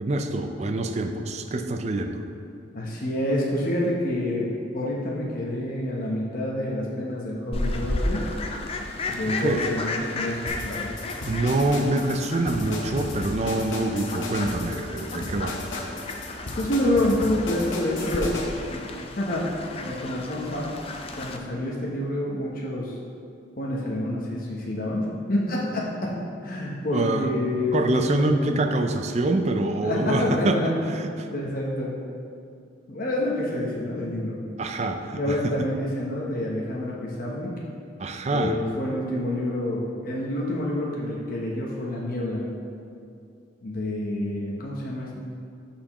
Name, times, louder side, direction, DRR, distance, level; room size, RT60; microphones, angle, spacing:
voice 1, 0.0-2.2 9.4-9.7 11.3-15.6 26.9-27.3 27.7-31.3 34.6-35.5 38.0-38.6, right 2 dB, 35° right, 6 dB, 0.4 m, -25 dB
voice 2, 2.7-8.2 9.0-10.9 16.6-18.4 18.7-18.8 19.2-19.5 19.8-20.7 21.2-23.0 23.6-26.1 26.4-28.6 29.8-30.8 31.3-31.9 32.9-34.4 35.1-37.5 38.3-42.4 43.6-45.1, left 1 dB, 45° left, -4 dB, 0.8 m, -28 dB
Fowl, 7.5-21.4, left 2 dB, 30° left, 0.5 m, -34 dB
sound 1, 10.5-18.5, left 2 dB, 70° left, 1.0 m, -35 dB
12.5 x 4.4 x 3.0 m, 2.4 s
head